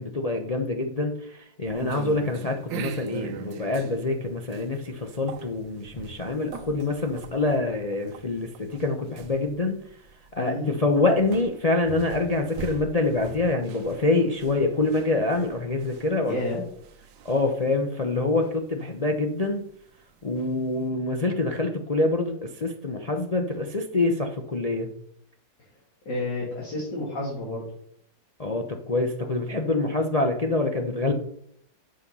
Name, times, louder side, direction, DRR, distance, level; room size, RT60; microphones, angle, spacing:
voice 1, 0.0-9.8 10.3-16.3 17.2-19.6 20.2-24.9 28.4-31.1, left 2 dB, 50° left, 3 dB, 0.4 m, -26 dB
sound 1, 1.7-20.9, right 7 dB, 80° right, 1.6 m, -42 dB
voice 2, 10.4-10.8 16.2-16.6 26.1-27.6, left 2 dB, 70° left, -5 dB, 3.0 m, -30 dB
9.7 x 6.4 x 5.4 m, 0.68 s
omnidirectional pair, 2.0 m